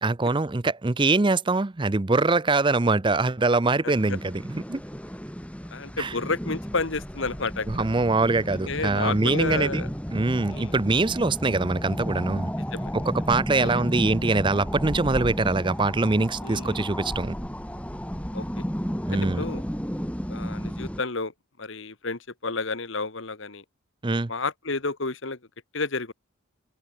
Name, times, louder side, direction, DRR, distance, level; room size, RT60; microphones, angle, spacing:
voice 1, 0.0-4.8 6.0-6.1 7.7-12.5 12.9-17.4 19.1-19.4 24.0-24.3, right 3 dB, 20° right, 0.5 m, -23 dB
sound 1, 3.9-21.0, equal, 5° left, 4.0 m, -33 dB
voice 2, 5.7-7.8 8.7-9.9 10.5-10.7 12.7-12.9 13.6-13.9 16.4-16.8 18.3-18.6 19.1-19.6 20.3-21.3 21.6-23.6 24.3-25.4 25.7-26.1, left 3 dB, 60° left, 1.5 m, -31 dB
head